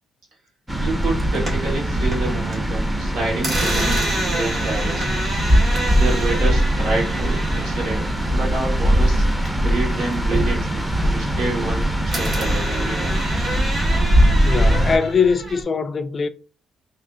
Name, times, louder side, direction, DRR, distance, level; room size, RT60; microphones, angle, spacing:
sound 1, 0.7-15.0, right 1 dB, 10° right, 0.7 m, -21 dB
voice 1, 0.8-5.2 5.9-9.3 9.6-13.2, right 2 dB, 85° right, 1.6 m, -28 dB
sound 2, 1.1-2.6 2.9-9.8 10.1-11.8 12.1-15.6, right 1 dB, 50° right, 1.9 m, -28 dB
voice 2, 14.4-16.3, left 5 dB, 40° left, 0.3 m, -21 dB
3.5 x 2.7 x 2.6 m
cardioid pair, 90°, 0 cm